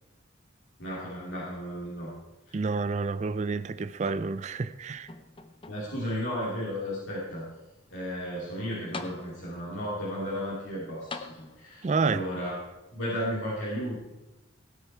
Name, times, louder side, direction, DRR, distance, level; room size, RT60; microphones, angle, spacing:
voice 1, 0.8-2.1 2.5-2.6 5.7-7.4 7.9-12.5 12.9-14.0, equal, 80° left, 3.0 m, -34 dB
voice 2, 2.5-5.1 11.8-12.2, right 4 dB, 35° right, 0.3 m, -29 dB
sound 1, 4.0-4.7 5.1-6.1 6.8-6.9 8.5-8.6 8.9-9.7 11.1-11.9 13.0-13.1, left 3 dB, 25° left, 0.7 m, -43 dB
16.5 x 9.2 x 4.4 m
head